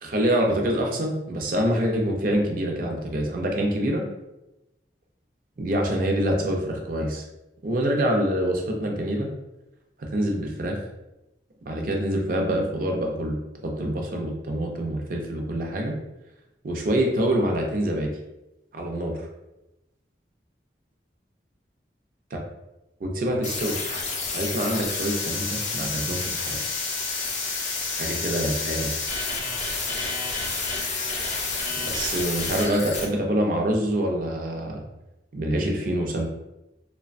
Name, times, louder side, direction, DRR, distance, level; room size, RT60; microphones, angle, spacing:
voice 1, 0.0-4.1 5.6-7.2 7.6-9.3 10.0-10.8 11.7-16.0 16.6-18.1 18.7-19.2 22.3-22.4 23.0-23.8 24.3-26.6 27.9-28.9 31.8-34.8 35.3-36.3, right 1 dB, 50° right, 1 dB, 0.5 m, -26 dB
sound 1, 23.4-33.1, left 3 dB, 40° left, 0.5 m, -29 dB
2.9 x 2.1 x 2.5 m, 0.95 s
head